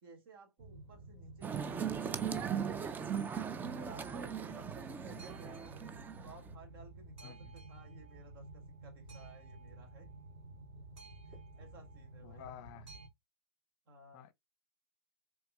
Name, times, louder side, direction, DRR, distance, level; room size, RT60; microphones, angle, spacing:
voice 1, 0.0-2.7 3.5-5.8 6.2-10.1 11.3-12.5 13.9-14.3, right 2 dB, 55° right, 2.2 m, -56 dB
Boat Water vehicle, 0.6-13.1, right 2 dB, 40° right, 2.5 m, -52 dB
sound 1, 1.4-6.5, right 7 dB, 15° right, 0.3 m, -38 dB
voice 2, 7.2-7.6 12.2-12.9 14.1-14.3, left 10 dB, 40° left, 0.6 m, -51 dB
5.6 x 3.6 x 2.3 m
hypercardioid pair, 115°, 14 cm